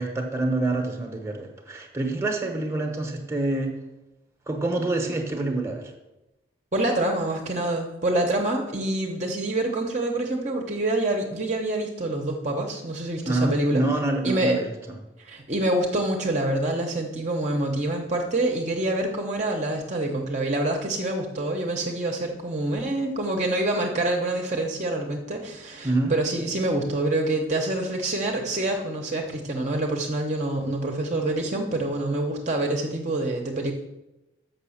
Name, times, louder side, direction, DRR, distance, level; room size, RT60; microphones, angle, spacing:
voice 1, 0.0-3.7 4.5-5.9 13.2-14.7 25.8-26.1, right 2 dB, 15° right, 3 dB, 1.0 m, -26 dB
voice 2, 6.7-13.8 14.2-14.6 15.3-33.7, right 1 dB, 35° right, 1 dB, 0.8 m, -26 dB
6.6 x 5.7 x 7.1 m, 0.99 s
head